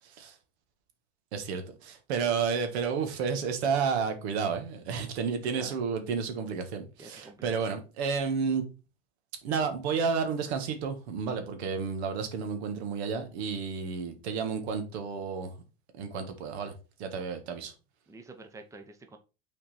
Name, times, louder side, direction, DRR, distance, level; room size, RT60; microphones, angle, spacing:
voice 1, 0.0-0.3 1.3-8.6 9.4-15.5 16.0-16.7 17.0-17.7, right 5 dB, 75° right, 1.7 m, -31 dB
voice 2, 7.0-7.7 18.1-19.2, right 3 dB, 10° right, 0.8 m, -48 dB
6.2 x 4.4 x 4.2 m
supercardioid pair, 120°, 33 cm